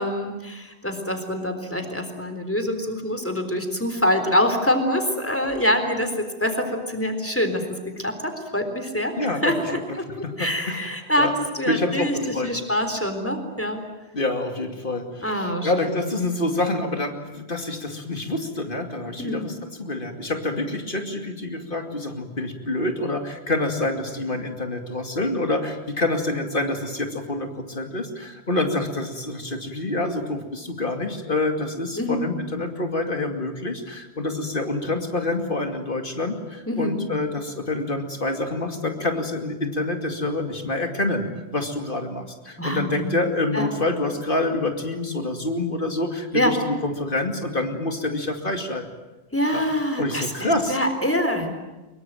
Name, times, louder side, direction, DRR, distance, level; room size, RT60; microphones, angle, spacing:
voice 1, 0.0-7.6 8.0-9.1 9.4-10.0 10.4-12.2 12.4-13.8 15.2-15.7 19.2-19.4 32.0-32.2 36.7-37.0 42.6-43.1 43.5-43.7 46.3-46.6 49.3-51.5, left 1 dB, 10° left, 6 dB, 3.8 m, -25 dB
voice 2, 9.2-10.8 11.2-11.3 11.7-12.6 14.1-41.3 41.5-48.9 49.5-49.6 50.0-50.8, left 2 dB, 55° left, 5 dB, 2.7 m, -27 dB
24.0 x 22.5 x 9.1 m, 1.1 s
omnidirectional pair, 1.1 m